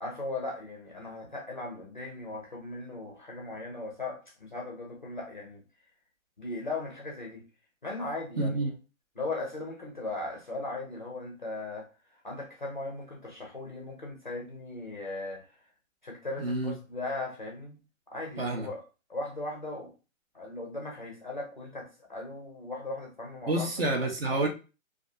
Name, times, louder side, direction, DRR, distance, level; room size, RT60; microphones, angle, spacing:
voice 1, 0.0-5.6 6.4-7.4 7.8-8.7 9.2-11.9 12.1-15.5 16.0-17.8 18.1-18.8 19.1-19.9 20.3-23.7 24.3-24.5, left 2 dB, 40° left, 0.4 m, -38 dB
voice 2, 8.4-8.7 16.4-16.7 18.4-18.7 23.5-24.5, right 2 dB, 45° right, 0.6 m, -28 dB
2.3 x 2.3 x 2.6 m
hypercardioid pair, 175°, 41 cm